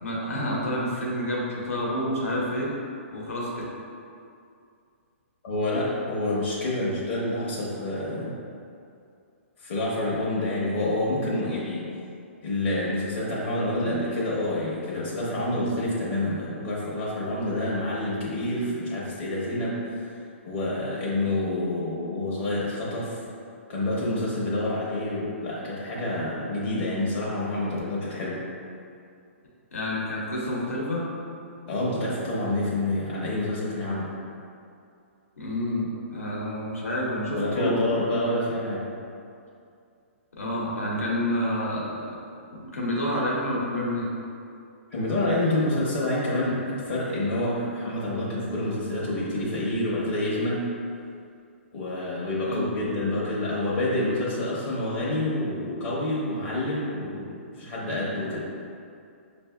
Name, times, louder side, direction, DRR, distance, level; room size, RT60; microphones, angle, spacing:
voice 1, 0.0-2.7 3.1-3.5 29.7-31.1 35.4-37.9 40.4-42.2 42.5-44.1 52.4-52.7, left 1 dB, 85° left, -5 dB, 1.1 m, -28 dB
voice 2, 5.4-8.3 9.6-11.8 12.4-20.2 20.5-23.2 23.7-28.4 31.7-34.1 37.3-38.8 44.9-50.6 51.7-58.4, left 1 dB, 60° left, -6 dB, 0.9 m, -28 dB
5.4 x 2.6 x 2.2 m, 2.4 s
hypercardioid pair, 140°, 7 cm